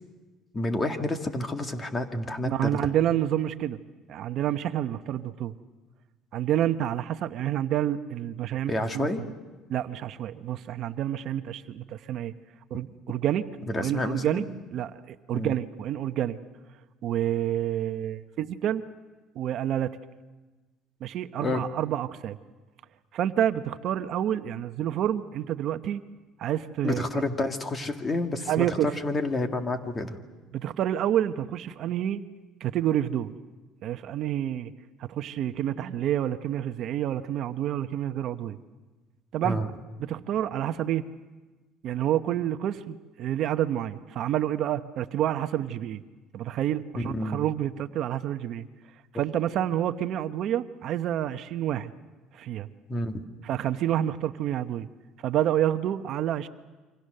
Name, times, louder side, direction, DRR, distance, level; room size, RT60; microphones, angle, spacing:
voice 1, 0.5-2.9 8.7-9.2 13.7-14.5 15.3-15.5 21.4-21.6 26.8-30.2 39.4-39.7 47.0-47.5 52.9-53.2, left 2 dB, 20° left, 6 dB, 2.0 m, -29 dB
voice 2, 2.4-3.8 4.1-5.5 6.3-9.3 9.7-12.3 12.7-13.5 13.7-14.4 14.7-16.4 17.0-18.8 19.3-20.0 21.0-22.4 23.1-26.0 26.4-27.2 28.5-28.9 30.5-32.2 32.6-33.3 33.8-34.7 35.0-38.6 39.3-39.6 40.1-41.1 41.8-46.0 46.3-48.7 49.1-51.9 52.3-52.7 53.4-54.9 55.2-56.5, right 11 dB, 55° right, 9 dB, 0.9 m, -28 dB
28.5 x 25.0 x 6.6 m, 1.2 s
cardioid pair, 125°, 0 cm